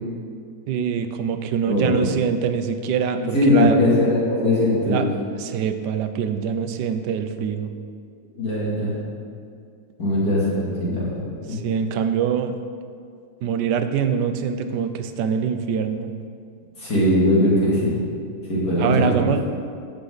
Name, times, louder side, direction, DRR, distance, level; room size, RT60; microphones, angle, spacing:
voice 1, 0.7-3.8 4.8-5.1 5.4-7.7 11.5-12.5 13.4-16.1 18.8-19.4, right 7 dB, 85° right, 9 dB, 1.3 m, -24 dB
voice 2, 1.7-2.0 3.3-5.1 8.4-8.9 10.0-11.2 11.5-11.6 16.8-17.9 18.5-19.1, left 1 dB, 65° left, -7 dB, 3.3 m, -20 dB
14.0 x 6.8 x 4.0 m, 2.3 s
omnidirectional pair, 1.8 m